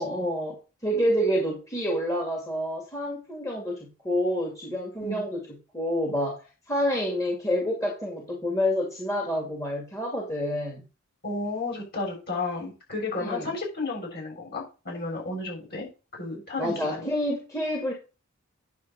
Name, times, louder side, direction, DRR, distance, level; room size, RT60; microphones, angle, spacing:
voice 1, 0.0-5.4 5.7-10.8 13.2-13.5 16.6-17.9, equal, 15° left, -1 dB, 2.3 m, -28 dB
voice 2, 11.2-17.1, left 3 dB, 50° left, -1 dB, 6.4 m, -33 dB
9.4 x 7.2 x 4.1 m, 0.31 s
head